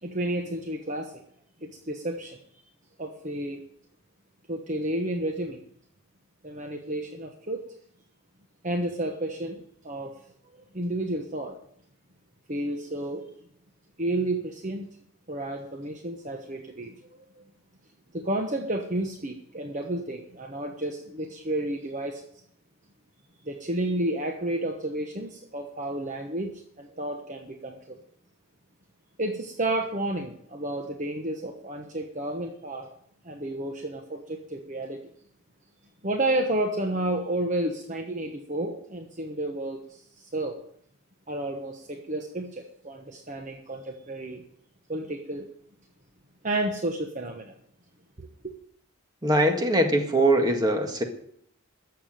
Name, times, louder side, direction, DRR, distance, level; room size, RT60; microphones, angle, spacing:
voice 1, 0.0-1.2 1.6-2.6 3.0-3.6 4.5-5.6 6.4-7.6 8.6-10.2 10.7-11.6 12.5-13.3 14.0-14.9 15.3-17.0 17.4-17.5 18.1-22.3 23.4-28.0 29.2-32.9 33.2-35.1 36.0-40.6 41.3-44.4 44.9-45.5 46.4-47.5 48.2-48.5, right 1 dB, 35° right, 3 dB, 1.1 m, -31 dB
voice 2, 49.2-51.0, right 1 dB, 20° right, 4 dB, 1.7 m, -22 dB
14.0 x 7.1 x 9.3 m, 0.68 s
head